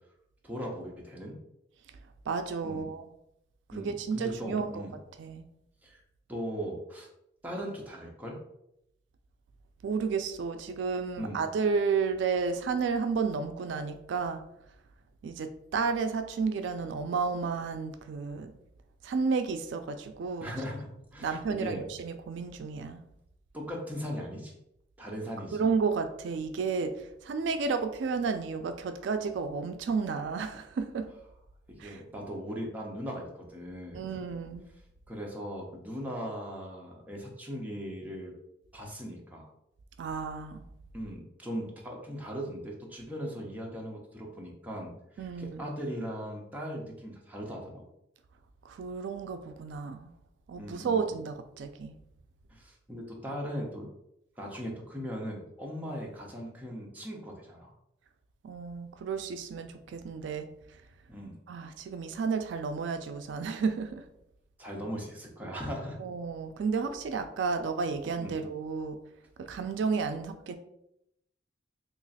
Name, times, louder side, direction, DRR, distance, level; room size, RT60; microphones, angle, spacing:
voice 1, 0.4-1.4 2.6-2.9 3.7-4.9 5.8-6.0 6.3-7.1 7.4-8.4 11.2-11.4 20.4-21.8 23.5-24.5 25.0-25.6 31.8-34.1 35.1-38.3 38.7-39.5 40.9-47.8 50.5-51.1 52.5-53.9 54.4-57.7 61.1-61.4 64.6-66.0 68.2-68.3, equal, 10° right, -2 dB, 0.6 m, -39 dB
voice 2, 2.3-3.1 3.8-4.8 5.2-5.4 9.8-14.4 15.2-18.5 19.0-20.5 21.2-23.0 25.5-31.1 31.8-32.0 33.9-34.6 40.0-40.6 45.2-45.6 48.6-50.1 50.5-51.9 58.4-60.5 61.5-64.0 66.0-69.0 69.4-70.6, right 5 dB, 80° right, 8 dB, 0.3 m, -32 dB
3.0 x 2.4 x 4.0 m, 0.80 s
head